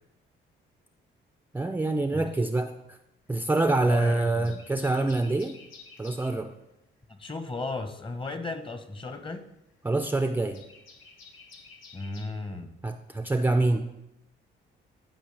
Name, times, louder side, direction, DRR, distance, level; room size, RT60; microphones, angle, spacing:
voice 1, 1.5-3.0 3.3-5.6 6.0-6.5 9.8-10.6 12.8-13.9, right 2 dB, 10° right, 7 dB, 0.4 m, -26 dB
sound 1, 3.3-3.9 4.3-6.4 8.1-12.3, left 4 dB, 80° left, 1.2 m, -52 dB
voice 2, 3.8-4.6 7.1-9.5 11.9-12.8, left 3 dB, 25° left, 8 dB, 0.9 m, -35 dB
13.0 x 5.0 x 3.3 m, 0.88 s
cardioid pair, 90°, 20 cm